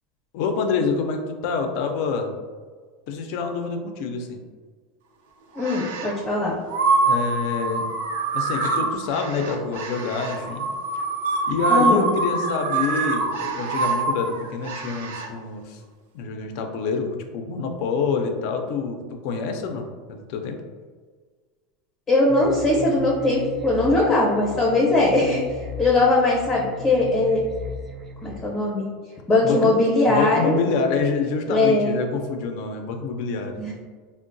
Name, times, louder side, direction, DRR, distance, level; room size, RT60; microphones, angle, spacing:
voice 1, 0.3-2.3 3.1-4.4 7.0-7.9 8.3-10.6 10.9-11.0 11.5-15.8 16.1-20.6 29.4-29.7 30.1-33.6, left 4 dB, 55° left, 4 dB, 0.4 m, -27 dB
voice 2, 5.5-6.6 11.7-12.1 22.1-25.4 25.8-27.4 28.2-28.9 29.3-30.6 31.5-32.0 33.6-33.7, left 2 dB, 20° left, -5 dB, 0.6 m, -20 dB
sound 1, 5.6-6.2 6.7-15.3, right 3 dB, 90° right, 0.4 m, -25 dB
sound 2, 22.3-28.4, left 2 dB, 25° right, 0.3 m, -36 dB
3.7 x 2.0 x 2.5 m, 1.5 s
supercardioid pair, 150°, 0 cm